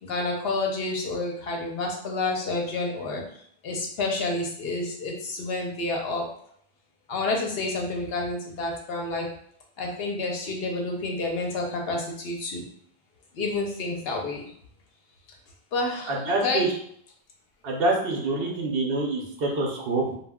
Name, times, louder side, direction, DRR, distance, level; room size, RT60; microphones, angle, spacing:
voice 1, 0.0-3.2 3.6-6.3 7.1-9.3 9.8-12.7 13.3-14.4 15.7-16.6, left 2 dB, 65° left, 1 dB, 0.8 m, -29 dB
voice 2, 16.1-16.7 17.6-20.2, right 2 dB, 65° right, 0 dB, 0.8 m, -26 dB
2.2 x 2.1 x 3.4 m, 0.64 s
omnidirectional pair, 1.1 m